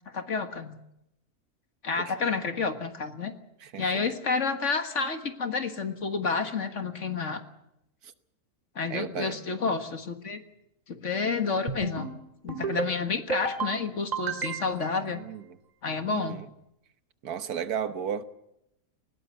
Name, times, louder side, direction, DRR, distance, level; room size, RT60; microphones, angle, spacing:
voice 1, 0.1-0.8 1.8-3.3 3.8-7.4 8.8-10.4 10.9-12.1 12.4-15.2 15.8-16.4, left 4 dB, 55° left, 1.9 m, -30 dB
voice 2, 2.0-2.3 3.6-3.8 8.9-9.4 15.1-15.4 16.1-16.4 17.2-18.2, right 8 dB, 80° right, 1.6 m, -34 dB
sound 1, 11.7-12.1 12.5-12.9 13.3-13.7 14.1-14.9, right 4 dB, 30° right, 2.2 m, -31 dB
20.0 x 18.0 x 8.1 m
omnidirectional pair, 1.6 m